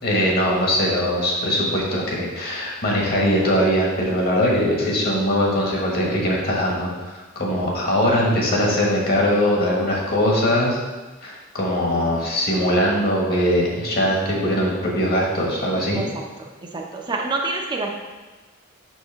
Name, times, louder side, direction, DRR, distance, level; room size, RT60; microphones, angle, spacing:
voice 1, 0.0-6.9 7.3-10.8 11.2-16.0, equal, 50° left, -2 dB, 1.5 m, -21 dB
voice 2, 11.9-12.2 15.9-16.1 16.4-17.9, right 3 dB, 20° right, 0 dB, 0.6 m, -28 dB
6.3 x 5.5 x 3.5 m, 1.2 s
head